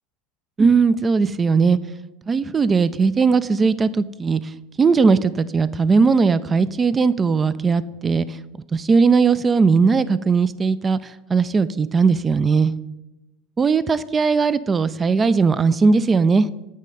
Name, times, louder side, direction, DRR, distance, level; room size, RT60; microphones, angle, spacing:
voice 1, 0.6-1.8 2.3-4.5 4.8-8.4 8.7-12.7 13.6-16.5, right 5 dB, 25° right, 16 dB, 0.3 m, -18 dB
8.2 x 3.2 x 5.3 m, 1.0 s
hypercardioid pair, 95°, 0 cm